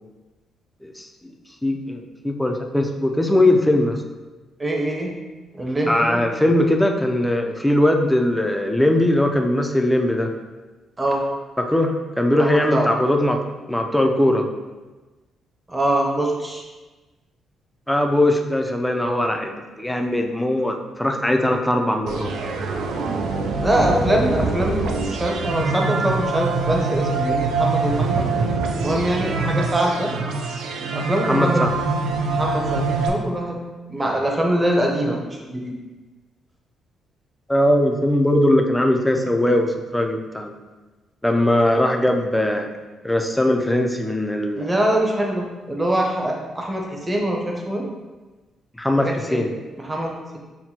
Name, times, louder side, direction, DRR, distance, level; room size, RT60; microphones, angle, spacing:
voice 1, 0.8-1.3 1.6-4.0 5.9-10.3 11.6-13.4 13.7-14.5 17.9-22.3 31.2-31.8 37.5-40.5 41.2-42.7 43.0-44.7 48.8-49.5, left 1 dB, 5° left, 3 dB, 0.4 m, -20 dB
voice 2, 4.6-5.1 5.5-6.2 11.0-11.2 12.4-12.9 15.7-16.6 23.6-28.3 28.8-30.1 30.9-31.7 32.2-33.6 33.9-35.7 44.6-47.8 49.0-49.4 49.8-50.4, right 1 dB, 20° right, 0 dB, 0.8 m, -23 dB
sound 1, 22.1-33.1, right 3 dB, 80° right, 0.4 m, -24 dB
5.8 x 2.1 x 2.8 m, 1.2 s
cardioid pair, 90°, 0 cm